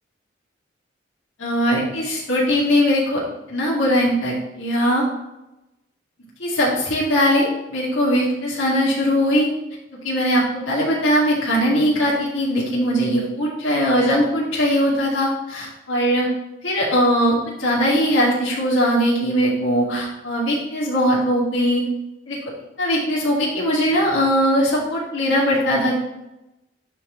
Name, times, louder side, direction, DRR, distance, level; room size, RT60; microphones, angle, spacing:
voice 1, 1.4-3.2 3.5-5.0 6.4-9.5 10.0-16.3 16.6-21.8 22.3-22.4 22.8-26.0, equal, 90° left, -6 dB, 2.4 m, -20 dB
11.0 x 4.6 x 3.2 m, 0.93 s
head